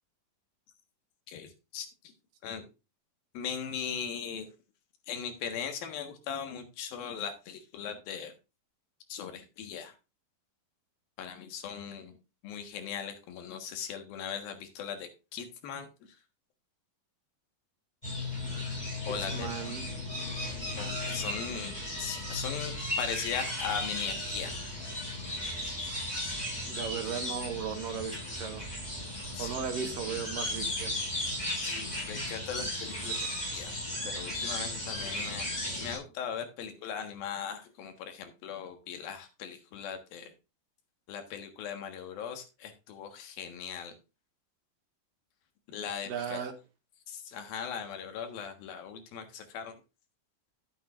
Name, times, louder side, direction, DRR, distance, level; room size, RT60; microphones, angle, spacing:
voice 1, 1.3-2.1 2.4-2.6 3.3-4.5 5.1-8.3 9.1-9.9 11.2-12.1 12.4-15.9 19.1-19.5 20.8-24.5 29.3-29.5 31.6-35.5 35.8-40.3 41.1-43.9 45.7-46.4 47.1-49.8, left 7 dB, 75° left, 3.3 m, -39 dB
sound 1, 18.0-36.0, left 1 dB, 10° left, 5.8 m, -35 dB
voice 2, 19.3-19.8 26.7-28.7 29.4-30.9 46.0-46.5, right 7 dB, 70° right, 2.8 m, -36 dB
11.5 x 9.1 x 2.5 m
omnidirectional pair, 4.3 m